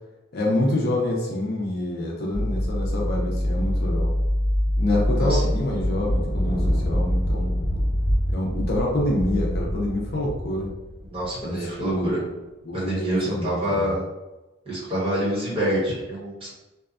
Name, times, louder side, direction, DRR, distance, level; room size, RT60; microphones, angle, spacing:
voice 1, 0.3-4.1 4.8-7.5 8.3-10.7 11.4-12.2 12.6-14.0, left 1 dB, 50° left, -2 dB, 0.5 m, -26 dB
sound 1, 2.3-9.5, left 1 dB, 60° right, 0.6 m, -25 dB
Thunder, 5.6-12.2, equal, 35° left, 1.0 m, -30 dB
voice 2, 11.1-12.2 12.7-14.0 14.7-16.5, right 1 dB, 25° right, -8 dB, 1.0 m, -26 dB
2.7 x 2.2 x 2.4 m, 1.0 s
head